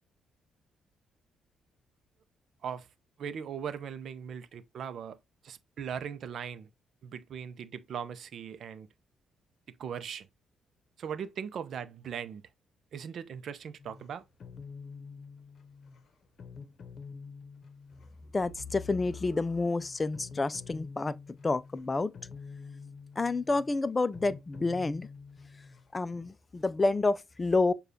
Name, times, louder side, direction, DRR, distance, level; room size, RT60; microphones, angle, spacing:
voice 1, 3.2-5.2 5.4-6.7 7.0-8.9 9.8-10.3 11.0-12.4 12.9-14.2, right 7 dB, 65° right, 0.5 m, -39 dB
sound 1, 13.8-26.0, left 5 dB, 55° left, 0.8 m, -47 dB
voice 2, 18.3-21.1 21.4-22.1 23.2-25.1 25.9-27.7, left 3 dB, 25° left, 0.3 m, -29 dB
6.6 x 2.3 x 2.6 m
cardioid pair, 90°, 0 cm